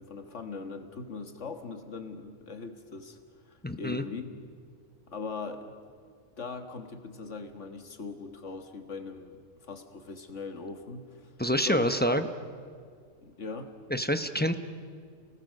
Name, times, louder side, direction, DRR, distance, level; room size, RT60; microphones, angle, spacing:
voice 1, 0.0-3.2 3.5-4.3 5.1-5.7 6.4-11.3 11.6-12.2 13.2-13.8, left 4 dB, 60° left, 7 dB, 1.9 m, -40 dB
voice 2, 3.6-4.0 11.4-12.3 13.9-14.5, equal, 10° left, 8 dB, 0.6 m, -27 dB
30.0 x 18.5 x 6.6 m, 2.1 s
omnidirectional pair, 1.4 m